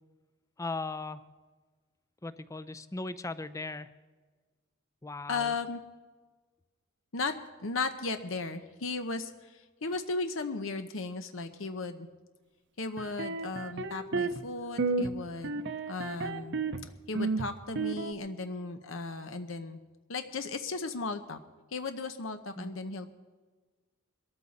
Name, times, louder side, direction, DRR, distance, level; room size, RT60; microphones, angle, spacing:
voice 1, 0.6-1.2 2.2-3.9 5.0-5.5 22.6-22.8, left 3 dB, 15° left, 14 dB, 0.5 m, -38 dB
voice 2, 5.3-5.8 7.1-7.3 7.6-12.1 12.8-15.6 15.9-16.6 17.1-19.8 20.1-21.4 21.7-23.1, left 3 dB, 70° left, 8 dB, 0.9 m, -36 dB
sound 1, 13.0-14.5 14.8-15.1 15.4-16.8 17.1-18.1, right 3 dB, 60° right, 0.8 m, -32 dB
22.0 x 13.5 x 4.2 m, 1.3 s
head